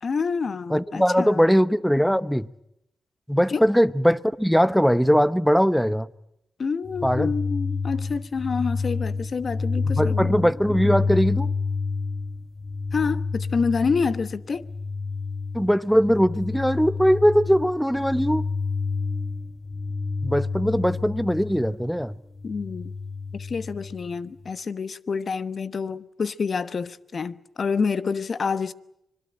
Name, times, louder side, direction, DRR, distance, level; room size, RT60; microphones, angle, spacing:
voice 1, 0.0-1.5 3.5-3.7 6.6-10.3 12.9-14.7 22.4-22.9 23.3-28.7, left 5 dB, 55° left, 1.1 m, -27 dB
voice 2, 0.7-2.5 3.3-6.1 7.0-7.3 10.0-11.5 15.5-18.5 20.2-22.2, equal, ahead, 0.9 m, -20 dB
sound 1, 6.8-21.9 22.3-24.1 24.4-24.5, left 4 dB, 30° left, 1.1 m, -29 dB
25.5 x 21.0 x 8.9 m
cardioid pair, 70°, 0 cm